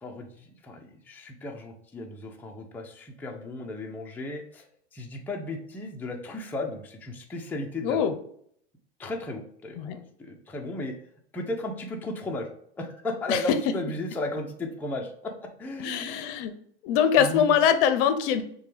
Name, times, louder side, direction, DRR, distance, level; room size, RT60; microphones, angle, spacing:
voice 1, 0.0-4.7 4.9-8.1 9.0-11.0 11.3-12.5 12.8-15.3 15.6-16.2 17.2-17.6, left 2 dB, 5° left, 0 dB, 0.5 m, -35 dB
voice 2, 7.8-8.1 9.8-10.0 13.3-13.4 15.8-16.5 16.8-18.4, left 8 dB, 50° left, 9 dB, 0.6 m, -23 dB
6.5 x 2.3 x 3.3 m, 0.66 s
hypercardioid pair, 110°, 34 cm